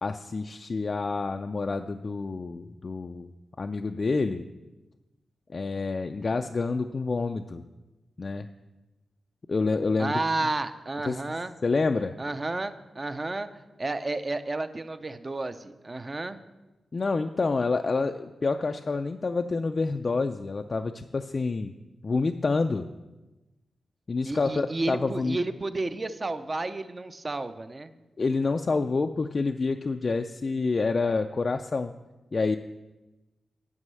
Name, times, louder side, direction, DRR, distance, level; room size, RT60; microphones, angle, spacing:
voice 1, 0.0-3.3 3.6-4.4 5.5-7.6 8.2-8.5 9.5-10.2 11.1-11.2 11.6-12.2 16.9-21.7 22.0-22.9 24.1-25.4 28.2-31.9 32.3-32.6, left 3 dB, 35° left, 6 dB, 0.3 m, -28 dB
voice 2, 10.0-11.5 12.2-16.4 24.2-27.9, right 2 dB, 25° right, 11 dB, 0.5 m, -31 dB
9.6 x 5.4 x 7.5 m, 1.1 s
wide cardioid pair, 145°, 0 cm